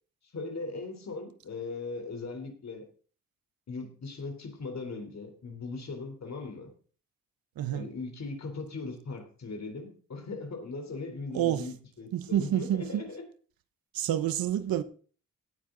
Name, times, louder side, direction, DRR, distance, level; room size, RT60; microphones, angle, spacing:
voice 1, 0.3-2.8 3.7-6.7 7.7-13.2, left 3 dB, 50° left, 3.7 m, -39 dB
voice 2, 7.6-7.9 11.3-11.7 12.1-13.0 13.9-14.8, right 11 dB, 85° right, 1.0 m, -28 dB
17.5 x 9.0 x 3.9 m
cardioid pair, 85°, 34 cm